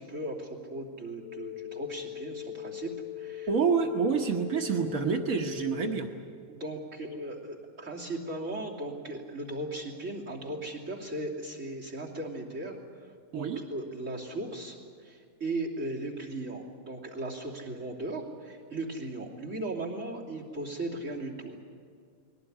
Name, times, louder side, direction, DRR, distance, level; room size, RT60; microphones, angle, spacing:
voice 1, 0.0-3.5 6.5-13.1 13.3-21.6, right 2 dB, 60° right, -3 dB, 3.3 m, -37 dB
sound 1, 1.2-6.1, left 13 dB, 50° left, 1.3 m, -40 dB
voice 2, 3.5-6.1 13.3-13.6, right 5 dB, 75° right, 3 dB, 1.6 m, -27 dB
21.5 x 18.0 x 9.9 m, 2.1 s
omnidirectional pair, 1.5 m